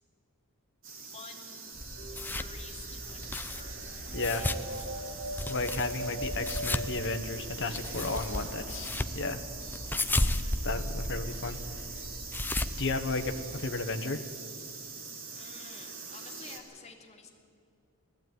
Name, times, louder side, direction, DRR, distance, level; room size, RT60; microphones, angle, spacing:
sound 1, 0.8-16.6, right 4 dB, 60° right, 2.7 m, -43 dB
voice 1, 1.0-1.8 2.1-5.1 9.9-10.6 15.3-17.3, left 4 dB, 30° left, 1 dB, 2.4 m, -51 dB
sound 2, 1.8-13.7, left 1 dB, 10° left, 0.6 m, -35 dB
sound 3, 2.0-2.7 4.1-8.0, right 1 dB, 85° right, 1.6 m, -40 dB
voice 2, 4.1-4.4 5.5-9.4 10.6-11.6 12.8-14.2, left 3 dB, 55° left, 7 dB, 1.2 m, -33 dB
19.0 x 14.5 x 9.4 m, 2.3 s
head